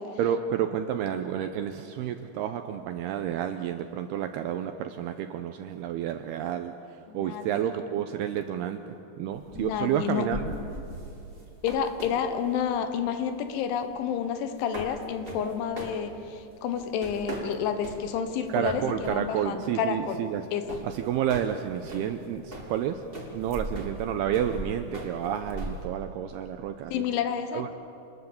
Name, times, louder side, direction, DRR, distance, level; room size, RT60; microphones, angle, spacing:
voice 1, 0.2-8.8 9.2-10.5 18.5-20.5 20.8-23.0 23.3-27.1 27.5-27.7, right 10 dB, 80° right, 7 dB, 2.4 m, -30 dB
voice 2, 7.1-7.5 9.6-10.3 11.6-20.2 20.5-20.6 26.9-27.8, left 7 dB, 80° left, 8 dB, 3.7 m, -30 dB
sound 1, 9.3-25.9, right 1 dB, 20° right, 1.8 m, -40 dB
27.5 x 20.5 x 7.1 m, 3.0 s
omnidirectional pair, 5.4 m